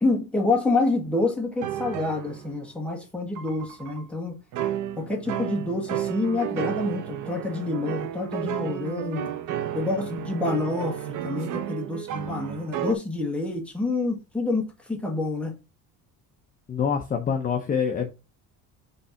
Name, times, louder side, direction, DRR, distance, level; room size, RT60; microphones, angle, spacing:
voice 1, 0.0-4.3 5.0-9.3 9.7-15.5, left 3 dB, 5° left, 1.6 m, -27 dB
sound 1, 1.6-2.7 3.4-4.0 4.5-12.9, right 11 dB, 60° right, 0.9 m, -32 dB
voice 2, 16.7-18.1, left 7 dB, 25° left, 0.7 m, -25 dB
5.5 x 3.4 x 5.6 m
cardioid pair, 155°, 35 cm